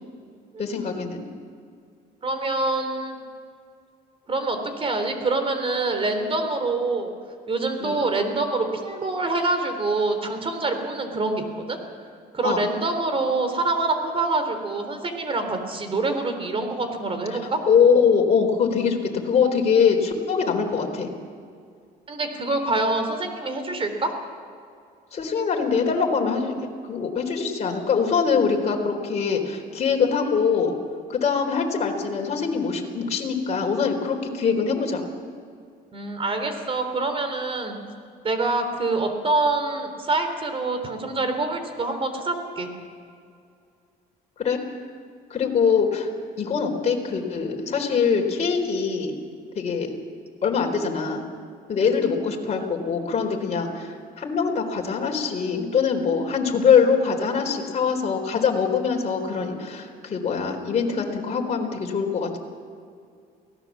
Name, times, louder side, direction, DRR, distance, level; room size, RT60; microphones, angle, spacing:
voice 1, 0.6-1.2 7.8-8.0 12.4-12.6 17.7-21.1 25.1-26.5 26.9-30.7 31.1-35.0 44.4-44.6 45.3-46.1 46.4-49.1 49.6-49.9 50.4-51.2 51.7-62.4, left 6 dB, 40° left, 1 dB, 4.0 m, -23 dB
voice 2, 2.2-3.2 4.3-7.1 7.5-11.8 12.3-17.6 22.1-24.1 35.9-37.8 38.2-42.7, right 3 dB, 35° right, 7 dB, 3.7 m, -25 dB
24.0 x 18.0 x 7.5 m, 2.3 s
cardioid pair, 110°, 17 cm